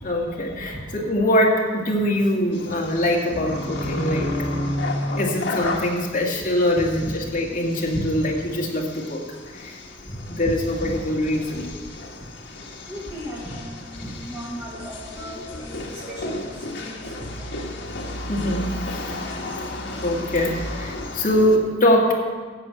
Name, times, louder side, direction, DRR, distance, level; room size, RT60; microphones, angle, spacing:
voice 1, 0.0-4.3 5.2-9.2 9.5-9.7 10.4-11.7 18.3-18.7 20.0-22.1, left 1 dB, 45° left, -2 dB, 2.0 m, -23 dB
sound 1, 2.5-21.6, left 1 dB, 70° left, 1.5 m, -33 dB
voice 2, 6.8-7.1 7.9-8.1 10.1-10.2 10.8-11.0 12.9-17.5, equal, 15° right, -7 dB, 1.7 m, -36 dB
14.0 x 5.3 x 8.4 m, 1.5 s
head